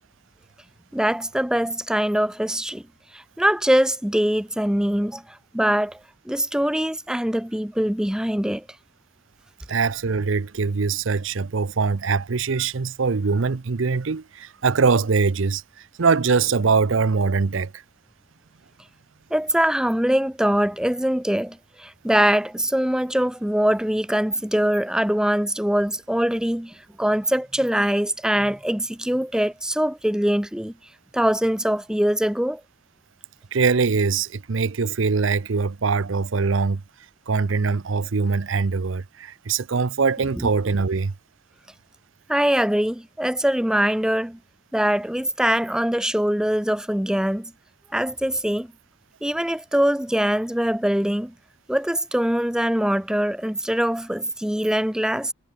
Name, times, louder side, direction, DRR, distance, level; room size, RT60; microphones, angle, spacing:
voice 1, 0.9-2.8 3.1-6.0 6.3-8.6 19.3-30.7 31.1-32.6 40.4-40.5 42.3-44.4 44.7-47.5 47.9-48.7 49.2-51.3 51.7-55.3, equal, 5° right, 0.5 m, -23 dB
voice 2, 9.7-17.8 33.5-36.8 37.3-41.1, right 4 dB, 75° right, 0.6 m, -22 dB
head